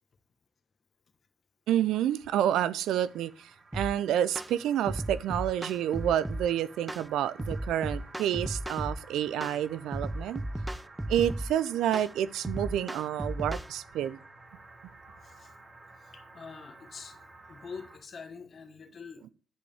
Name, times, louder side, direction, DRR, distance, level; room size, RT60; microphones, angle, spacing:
voice 1, 1.7-3.3 3.7-10.4 11.1-14.2, right 11 dB, 85° right, 0.3 m, -29 dB
sound 1, 2.1-18.0, right 2 dB, 50° right, 1.9 m, -53 dB
sound 2, 3.7-3.9 4.4-4.5 4.9-6.5 6.9-7.1 7.4-9.0 9.4-9.6 9.9-11.5 11.9-12.1 12.4-13.7, right 1 dB, 10° right, 0.5 m, -35 dB
voice 2, 15.2-15.5 16.0-17.2 17.5-19.2, left 5 dB, 60° left, 1.3 m, -45 dB
11.0 x 5.3 x 3.4 m
supercardioid pair, 50°, 0 cm